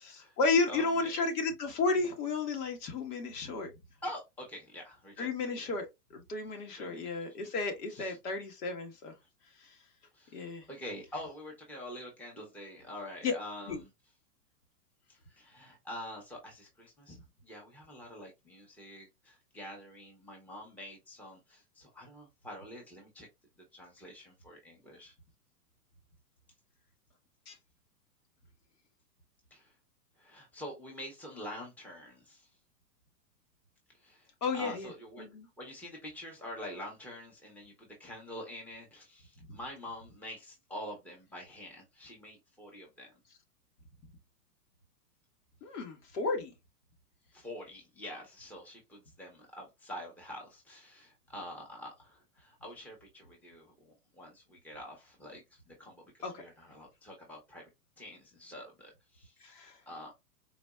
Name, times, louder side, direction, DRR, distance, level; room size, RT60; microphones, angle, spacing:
voice 1, 0.0-3.7 5.2-9.1 9.6-9.8 10.3-10.7 13.2-13.4 13.7-13.8 27.5-27.6 34.4-34.9 35.2-35.5 39.5-39.6 45.6-46.5 56.2-56.4 59.4-59.8, left 4 dB, 70° left, 1.5 m, -33 dB
voice 2, 0.7-1.1 3.4-3.5 4.0-5.3 5.6-5.7 6.7-7.1 7.9-8.2 10.1-13.9 15.1-23.3 23.7-25.1 29.5-29.7 30.2-32.5 34.0-34.3 34.5-35.2 35.6-43.1 47.3-56.1 56.4-57.6 58.0-60.1, left 1 dB, 5° left, 0.9 m, -46 dB
4.0 x 2.5 x 2.3 m
hypercardioid pair, 130°, 47 cm